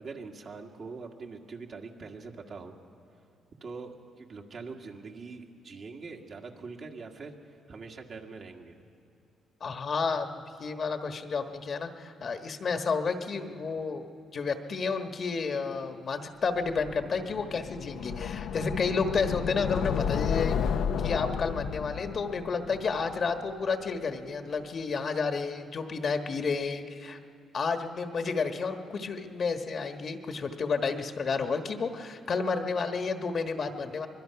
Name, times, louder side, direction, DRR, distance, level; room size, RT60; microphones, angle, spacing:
voice 1, 0.0-2.8 3.6-7.4 7.7-8.8, right 4 dB, 55° right, 1 dB, 1.9 m, -43 dB
voice 2, 9.6-14.0 14.3-20.6 21.0-27.2 27.5-34.1, left 4 dB, 50° left, 6 dB, 1.3 m, -31 dB
sound 1, 16.6-23.7, left 7 dB, 75° left, 0.6 m, -32 dB
24.0 x 21.5 x 5.8 m, 2.4 s
cardioid pair, 90°, 0 cm